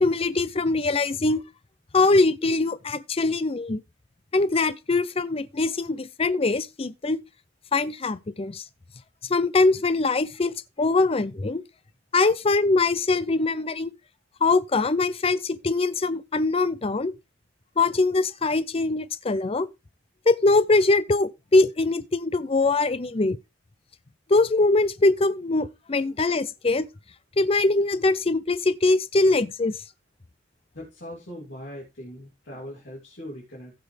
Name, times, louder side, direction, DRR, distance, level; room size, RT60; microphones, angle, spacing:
voice 1, 0.0-1.4 1.9-3.8 4.3-7.2 7.7-8.6 9.3-11.6 12.1-13.9 14.4-17.1 17.8-19.7 20.3-23.4 24.3-26.9 27.4-29.8, left 3 dB, 30° left, 0.5 m, -22 dB
voice 2, 30.7-33.7, equal, 65° left, 3.1 m, -40 dB
15.5 x 6.1 x 3.4 m
head